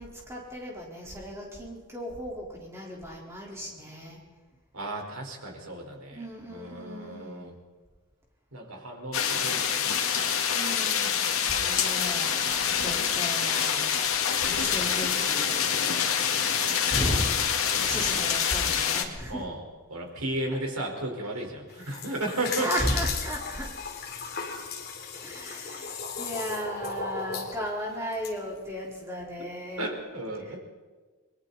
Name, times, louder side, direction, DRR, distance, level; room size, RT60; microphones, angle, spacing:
voice 1, 0.0-4.2 5.7-7.6 9.7-9.9 10.5-15.7 16.9-17.3 17.7-19.4 21.8-22.1 22.6-23.8 25.2-30.0 30.4-30.6, equal, 10° right, -3 dB, 4.4 m, -35 dB
voice 2, 4.7-7.5 8.5-9.9 16.3-16.8 19.3-22.7 29.8-30.6, right 1 dB, 85° right, 1 dB, 4.9 m, -34 dB
sound 1, 9.1-19.0, left 7 dB, 75° left, 2.1 m, -26 dB
sound 2, 21.7-28.3, left 5 dB, 45° left, 2.8 m, -36 dB
30.0 x 21.5 x 4.3 m, 1.4 s
head